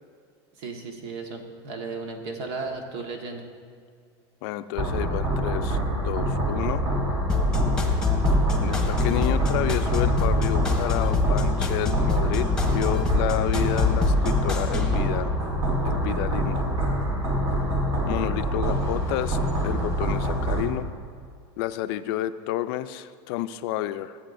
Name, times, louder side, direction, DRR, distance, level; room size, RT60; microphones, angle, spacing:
voice 1, 0.6-3.4, right 4 dB, 75° right, 3 dB, 1.5 m, -35 dB
voice 2, 4.4-6.8 8.6-15.3 15.8-16.7 18.1-20.9 21.6-24.2, left 13 dB, 65° left, 12 dB, 0.5 m, -30 dB
sound 1, 4.7-20.6, right 1 dB, 50° right, 2.6 m, -26 dB
sound 2, 7.3-15.0, left 4 dB, 5° left, 1.1 m, -25 dB
16.0 x 8.5 x 2.6 m, 2.1 s
supercardioid pair, 135°, 13 cm